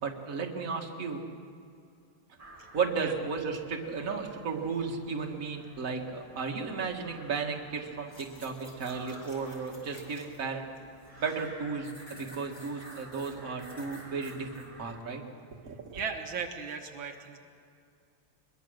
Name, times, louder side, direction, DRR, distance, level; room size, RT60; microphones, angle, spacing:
voice 1, 0.0-1.2 2.7-10.7 11.2-15.2 15.6-16.0, right 5 dB, 40° right, 2 dB, 2.1 m, -34 dB
sound 1, 2.4-15.0, right 1 dB, 25° right, 3.1 m, -53 dB
sound 2, 8.1-10.4 10.8-11.5 11.8-14.7 15.1-15.2, equal, 15° left, 4.3 m, -51 dB
voice 2, 15.9-17.4, right 6 dB, 75° right, 3 dB, 2.0 m, -36 dB
23.5 x 22.0 x 6.5 m, 2.4 s
omnidirectional pair, 2.2 m